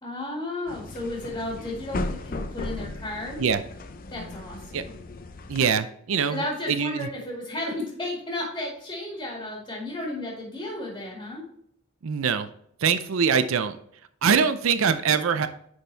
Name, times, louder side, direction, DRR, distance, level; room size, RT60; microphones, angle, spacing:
voice 1, 0.0-3.4 4.1-4.9 6.3-11.4, left 1 dB, 20° left, -4 dB, 2.2 m, -33 dB
sound 1, 0.7-5.7, left 2 dB, 40° left, 0.5 m, -36 dB
voice 2, 5.5-7.1 12.0-12.5 12.8-13.8 14.2-15.5, right 6 dB, 65° right, 11 dB, 0.5 m, -23 dB
9.4 x 4.4 x 3.3 m, 0.68 s
head